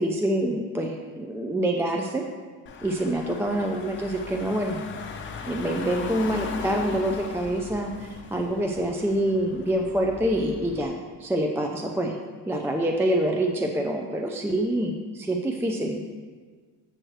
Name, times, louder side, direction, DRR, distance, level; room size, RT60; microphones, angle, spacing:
voice 1, 0.0-2.2 2.8-4.8 5.4-10.9 11.2-12.2 12.5-16.0, right 1 dB, 5° right, 2 dB, 0.4 m, -26 dB
Car / Engine, 2.7-10.9, left 5 dB, 30° left, 0.8 m, -39 dB
7.7 x 6.3 x 3.1 m, 1.5 s
supercardioid pair, 95°, 38 cm